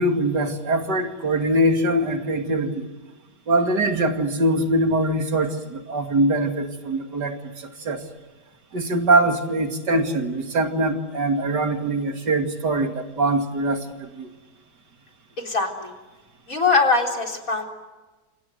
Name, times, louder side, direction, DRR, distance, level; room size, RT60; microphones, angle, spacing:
voice 1, 0.0-2.9 3.5-8.0 8.7-14.3, right 1 dB, 70° right, 5 dB, 2.9 m, -23 dB
voice 2, 15.4-15.9 16.5-17.7, left 4 dB, 50° left, 2 dB, 4.3 m, -22 dB
29.0 x 26.0 x 7.9 m, 1.2 s
omnidirectional pair, 1.9 m